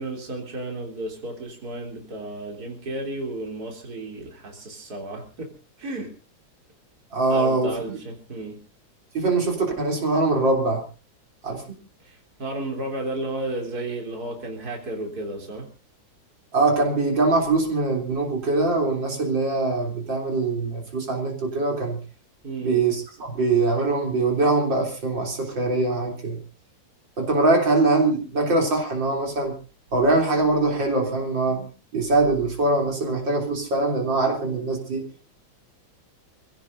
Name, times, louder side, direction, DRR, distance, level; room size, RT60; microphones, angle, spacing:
voice 1, 0.0-5.5 5.8-6.1 7.3-8.6 12.0-15.7 22.4-22.9, right 2 dB, 55° right, 1 dB, 4.0 m, -33 dB
voice 2, 7.1-8.0 9.1-10.8 11.4-11.6 16.5-22.0 22.6-26.4 27.2-29.5 29.9-31.7 31.9-35.0, right 2 dB, 75° right, 1 dB, 4.2 m, -22 dB
28.0 x 16.5 x 2.7 m, 0.35 s
omnidirectional pair, 2.0 m